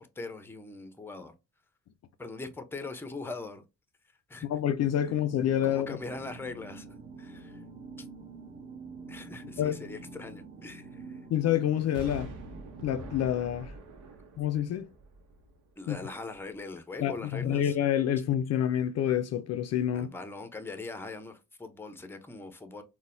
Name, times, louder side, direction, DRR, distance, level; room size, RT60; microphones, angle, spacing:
voice 1, 0.0-1.3 2.2-3.6 4.3-4.5 5.6-6.9 7.2-7.6 8.0-8.1 9.1-11.2 15.8-17.8 19.9-22.8, left 3 dB, 5° left, 0.6 m, -41 dB
voice 2, 4.4-6.0 9.6-9.8 11.3-12.3 12.8-13.7 14.4-14.9 15.9-16.0 17.0-20.1, left 10 dB, 60° left, 0.4 m, -28 dB
sound 1, 4.8-13.4, right 3 dB, 25° right, 0.8 m, -47 dB
Explosion, 11.9-15.9 16.3-16.4, right 1 dB, 75° right, 0.9 m, -45 dB
3.9 x 2.2 x 2.5 m
cardioid pair, 90°, 30 cm